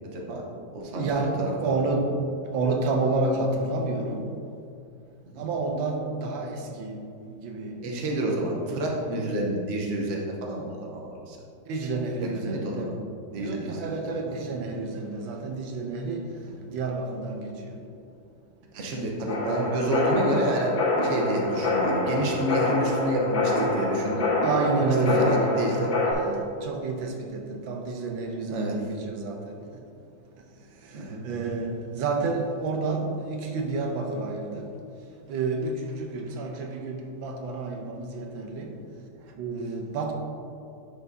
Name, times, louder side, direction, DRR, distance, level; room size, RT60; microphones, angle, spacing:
voice 1, 0.1-0.4 0.7-1.1 1.4-1.7 5.2-5.4 7.8-11.4 12.2-12.9 13.3-13.8 18.7-20.7 21.0-24.3 25.2-25.9 28.5-28.7 30.9-31.2, right 1 dB, 50° right, -1 dB, 1.1 m, -29 dB
voice 2, 0.9-2.1 2.5-4.3 5.4-7.0 7.3-7.8 11.7-12.9 13.4-16.3 16.7-17.7 24.4-25.4 26.3-29.6 30.9-34.7 35.3-38.8 39.3-40.1, right 3 dB, 85° right, 3 dB, 1.5 m, -29 dB
sound 1, 19.3-26.1, left 2 dB, 85° left, 2.2 m, -26 dB
10.5 x 5.7 x 2.7 m, 2.5 s
omnidirectional pair, 2.1 m